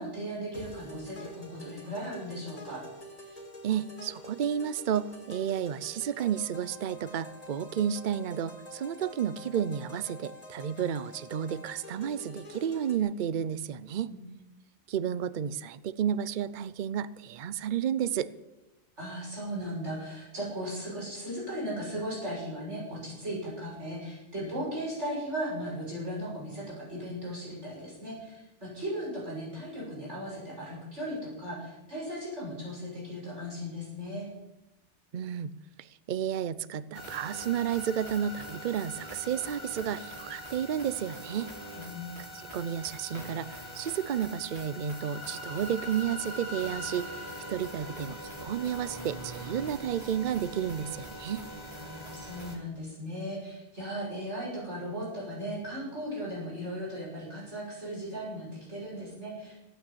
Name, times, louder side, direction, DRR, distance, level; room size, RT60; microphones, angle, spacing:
voice 1, 0.0-2.8 14.1-14.2 19.0-34.3 41.7-42.2 51.8-59.6, equal, 80° right, -5 dB, 7.4 m, -37 dB
sound 1, 0.5-13.0, equal, 30° left, 2.3 m, -47 dB
voice 2, 3.6-14.1 14.9-18.3 35.1-35.5 35.8-41.5 42.3-47.1 47.5-51.5, right 9 dB, 50° right, 16 dB, 0.7 m, -32 dB
sound 2, 36.9-52.6, equal, 25° right, 3.6 m, -42 dB
15.5 x 9.2 x 8.5 m, 0.98 s
omnidirectional pair, 1.2 m